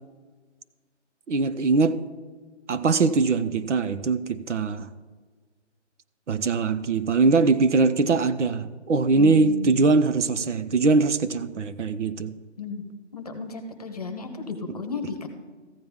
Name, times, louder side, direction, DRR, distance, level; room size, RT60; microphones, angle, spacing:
voice 1, 1.3-2.0 2.7-4.9 6.3-12.3, right 4 dB, 80° right, 13 dB, 0.8 m, -22 dB
voice 2, 9.1-10.0 12.6-12.8 13.1-15.3, left 3 dB, 35° left, 6 dB, 0.9 m, -33 dB
14.5 x 9.7 x 3.5 m, 1.4 s
hypercardioid pair, 175°, 36 cm